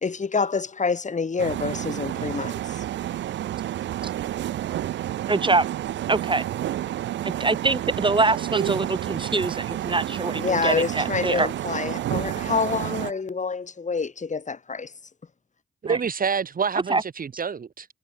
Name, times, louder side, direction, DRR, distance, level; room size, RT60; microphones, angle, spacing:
voice 1, 0.0-2.8 10.4-14.9, left 4 dB, 40° left, 1.9 m, -27 dB
sound 1, 1.4-13.1, right 12 dB, 85° right, 1.0 m, -30 dB
voice 2, 5.3-5.7 6.1-6.4 7.2-11.5 15.9-16.0 16.9-17.0, right 3 dB, 25° right, 1.2 m, -24 dB
voice 3, 15.8-17.9, right 6 dB, 50° right, 1.4 m, -27 dB
supercardioid pair, 55°, 18 cm